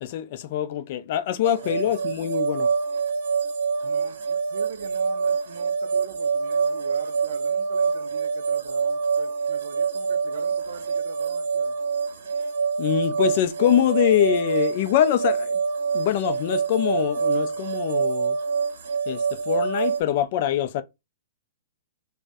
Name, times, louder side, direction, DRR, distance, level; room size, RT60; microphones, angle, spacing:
voice 1, 0.0-2.7 12.8-15.6 15.9-18.4 19.1-20.8, left 11 dB, 35° left, 0.3 m, -24 dB
sound 1, 1.4-20.0, right 5 dB, 80° right, 0.7 m, -26 dB
voice 2, 3.8-11.8, right 8 dB, 60° right, 0.3 m, -41 dB
2.5 x 2.0 x 3.4 m
hypercardioid pair, 175°, 0 cm